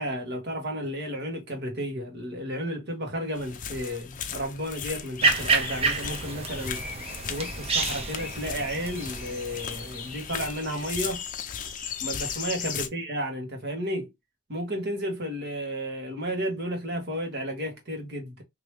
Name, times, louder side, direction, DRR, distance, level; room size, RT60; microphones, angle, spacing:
voice 1, 0.0-6.8 7.3-11.2 12.0-14.1 14.5-18.4, equal, 50° right, 1.4 m, -32 dB
sound 1, 3.3-12.9, left 7 dB, 35° left, 0.5 m, -36 dB
sound 2, 5.2-10.8, right 4 dB, 25° right, 0.6 m, -29 dB
3.2 x 2.9 x 3.1 m
head